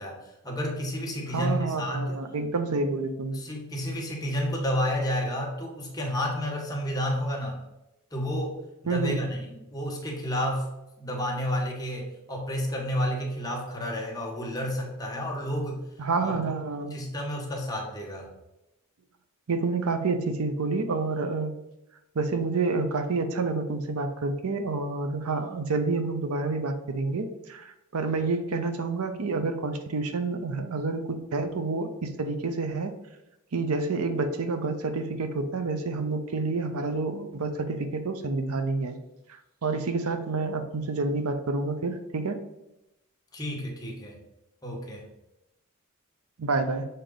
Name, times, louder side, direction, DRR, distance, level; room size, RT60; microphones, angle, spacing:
voice 1, 0.0-2.2 3.3-7.6 8.1-10.7 11.0-15.8 16.2-16.4 16.9-18.3 43.3-44.2 44.6-45.0, equal, 20° left, -1 dB, 1.2 m, -31 dB
voice 2, 1.3-3.4 8.9-9.2 16.0-17.1 19.5-21.6 22.1-32.9 33.5-39.0 39.3-42.4 46.4-46.9, right 3 dB, 90° right, 8 dB, 0.7 m, -29 dB
6.6 x 3.9 x 3.9 m, 0.91 s
head